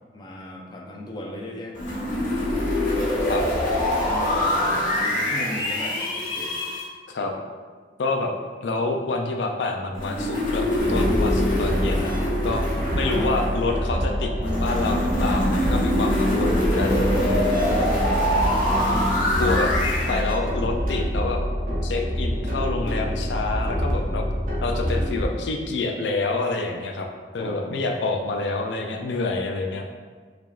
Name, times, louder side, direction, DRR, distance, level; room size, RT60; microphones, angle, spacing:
voice 1, 0.1-2.1 3.9-4.7 5.0-6.6 27.4-27.9, left 1 dB, 25° left, -1 dB, 0.5 m, -37 dB
sound 1, 1.8-6.8 9.9-13.7 14.4-20.2, left 1 dB, 50° left, 1.2 m, -24 dB
voice 2, 8.0-8.3 8.6-12.1 12.4-12.6 12.9-17.6 19.4-19.7 20.1-21.4 21.8-24.2 24.6-27.1 27.3-29.9, left 3 dB, 85° left, 3 dB, 0.5 m, -27 dB
sound 2, 10.8-25.2, equal, 50° right, 0.8 m, -26 dB
4.7 x 3.5 x 2.4 m, 1.5 s
head